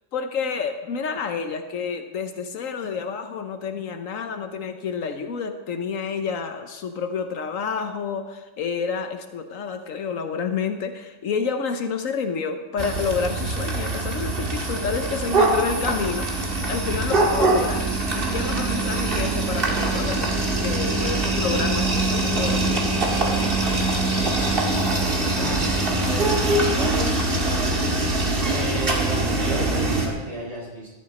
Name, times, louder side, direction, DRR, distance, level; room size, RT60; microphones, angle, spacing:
voice 1, 0.1-20.3 20.6-24.0, left 5 dB, 80° left, 7 dB, 1.2 m, -29 dB
sound 1, 12.8-30.1, right 2 dB, 45° right, 1.9 m, -23 dB
voice 2, 20.7-21.3 24.3-28.0 28.5-30.9, right 2 dB, 25° right, -4 dB, 4.6 m, -33 dB
15.0 x 12.0 x 4.2 m, 1.2 s
omnidirectional pair, 1.4 m